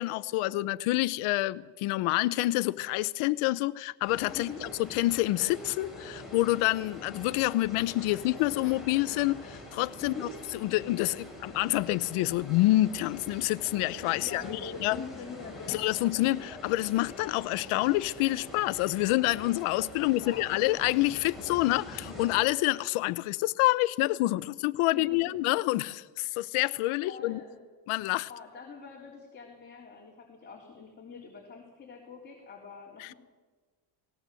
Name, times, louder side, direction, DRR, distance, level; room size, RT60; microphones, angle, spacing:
voice 1, 0.0-4.5 4.8-10.3 10.6-15.0 15.7-27.4 27.9-28.3 33.0-33.1, left 18 dB, 85° left, 0.9 m, -27 dB
sound 1, 4.1-22.4, left 1 dB, ahead, 7.1 m, -45 dB
voice 2, 14.1-16.0 20.0-20.5 24.9-25.3 27.1-27.6 28.3-33.1, left 5 dB, 20° left, 3.8 m, -44 dB
19.5 x 18.5 x 7.7 m
cardioid pair, 150°, 49 cm